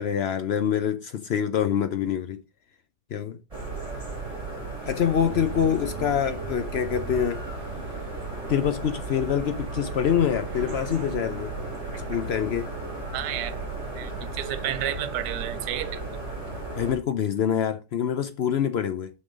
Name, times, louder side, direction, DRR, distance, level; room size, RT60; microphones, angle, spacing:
voice 1, 0.0-2.4 3.1-3.4 4.9-7.4 8.5-11.5 12.1-12.7 16.8-19.1, left 8 dB, 80° left, 0.5 m, -25 dB
sound 1, 3.5-17.0, right 3 dB, 20° right, 3.3 m, -35 dB
sound 2, 5.1-16.8, right 4 dB, 50° right, 0.9 m, -42 dB
voice 2, 13.1-13.6 13.9-16.0, right 11 dB, 80° right, 1.3 m, -31 dB
6.3 x 5.4 x 5.1 m
omnidirectional pair, 1.8 m